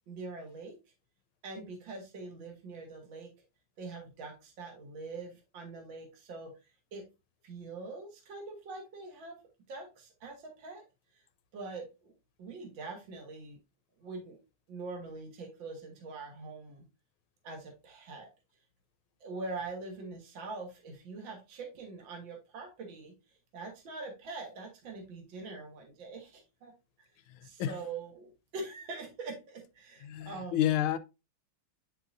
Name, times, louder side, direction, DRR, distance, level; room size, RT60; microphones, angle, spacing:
voice 1, 0.1-0.7 1.4-3.3 3.8-6.5 6.9-7.1 7.4-9.4 9.7-10.8 11.5-12.1 12.4-13.6 14.0-14.4 14.7-16.8 17.4-18.3 19.2-23.1 23.5-26.7 27.4-30.6, right 3 dB, 65° right, 2.1 m, -43 dB
voice 2, 27.3-27.8 30.0-31.0, left 11 dB, 80° left, 1.4 m, -30 dB
9.8 x 3.8 x 2.5 m
omnidirectional pair, 2.3 m